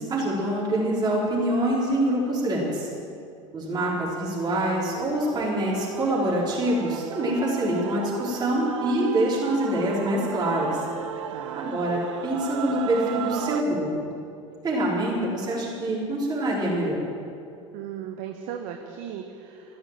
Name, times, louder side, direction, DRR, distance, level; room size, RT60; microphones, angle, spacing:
voice 1, 0.0-2.9 3.5-10.8 11.5-14.1 14.6-17.0, right 1 dB, 25° right, -5 dB, 4.8 m, -25 dB
Male singing / Female singing / Musical instrument, 4.1-13.6, right 10 dB, 65° right, 0.7 m, -36 dB
voice 2, 11.3-11.7 17.7-19.8, right 9 dB, 50° right, 4 dB, 1.2 m, -37 dB
15.5 x 11.5 x 7.8 m, 2.4 s
figure-of-eight pair, 75°, 17 cm